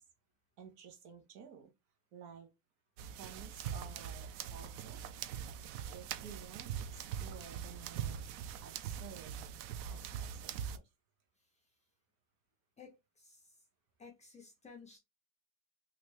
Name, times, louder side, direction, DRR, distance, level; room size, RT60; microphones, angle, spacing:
voice 1, 0.6-1.7 2.1-2.5 3.1-5.0 5.9-8.2 8.6-9.4 9.8-10.7, right 7 dB, 80° right, 1.3 m, -53 dB
sound 1, 3.0-10.8, right 8 dB, 60° right, 0.5 m, -42 dB
voice 2, 12.8-13.6 14.0-15.0, left 5 dB, 15° left, 0.3 m, -55 dB
3.0 x 2.7 x 3.1 m
cardioid pair, 150°, 48 cm